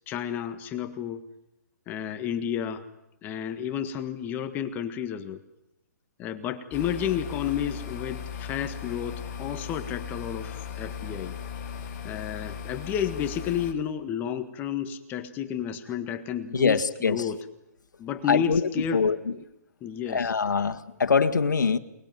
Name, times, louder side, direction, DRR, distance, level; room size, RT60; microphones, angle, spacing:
voice 1, 0.1-1.2 1.9-2.8 3.2-5.4 6.2-11.3 12.0-17.4 18.0-19.0 19.3-19.4 19.8-20.3, left 9 dB, 20° left, 9 dB, 1.6 m, -31 dB
sound 1, 6.7-13.7, left 7 dB, 35° left, 4.2 m, -37 dB
voice 2, 16.5-17.3 18.3-18.6 18.9-19.2 20.1-21.8, left 5 dB, 90° left, 7 dB, 1.9 m, -23 dB
28.5 x 20.5 x 9.4 m, 0.93 s
hypercardioid pair, 150°, 10 cm